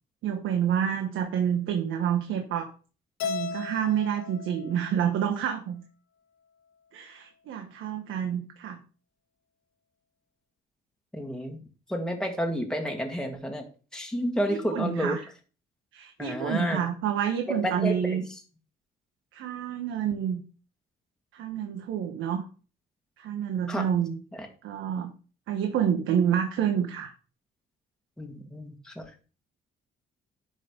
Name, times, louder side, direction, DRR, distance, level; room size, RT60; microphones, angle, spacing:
voice 1, 0.2-2.7 3.2-5.8 6.9-8.8 14.5-15.2 15.9-18.2 19.3-20.4 21.3-22.4 23.2-24.2 24.6-25.1 25.5-27.1, right 9 dB, 80° right, 3 dB, 1.2 m, -28 dB
Keyboard (musical), 3.2-5.5, left 6 dB, 90° left, 1.3 m, -36 dB
voice 2, 11.1-11.6 11.9-13.7 13.9-15.2 16.2-16.8 17.5-18.3 23.7-23.9 24.4-24.5 28.2-29.1, equal, 5° left, 3 dB, 1.6 m, -30 dB
11.0 x 3.9 x 5.0 m, 0.37 s
cardioid pair, 90°, 20 cm